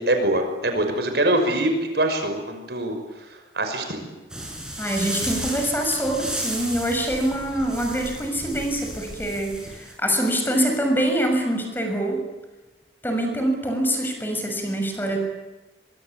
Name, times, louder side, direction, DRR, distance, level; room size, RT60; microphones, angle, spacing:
voice 1, 0.0-3.3 3.5-4.0, right 1 dB, 65° right, 6 dB, 5.9 m, -23 dB
sound 1, 4.3-9.9, right 1 dB, 5° right, 6.7 m, -33 dB
voice 2, 4.8-12.2 13.0-15.2, right 1 dB, 10° left, 4 dB, 6.5 m, -24 dB
25.5 x 23.0 x 8.5 m, 1.1 s
head